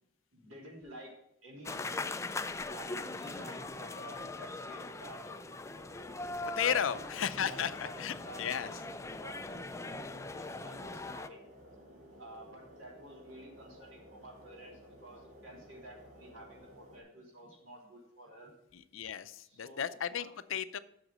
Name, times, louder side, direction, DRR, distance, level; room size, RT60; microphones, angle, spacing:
voice 1, 0.3-1.1 1.4-5.4 6.4-7.1 7.4-7.9 8.2-8.8 9.2-11.4 12.1-18.5 19.4-20.3, right 1 dB, 80° right, -1 dB, 3.1 m, -51 dB
sound 1, 1.6-11.3, left 3 dB, 15° left, 0.4 m, -41 dB
sound 2, 5.7-17.0, equal, 40° right, 4.1 m, -55 dB
voice 2, 6.6-8.7 18.7-20.8, left 8 dB, 75° left, 14 dB, 0.5 m, -34 dB
7.8 x 6.4 x 6.2 m, 0.82 s
head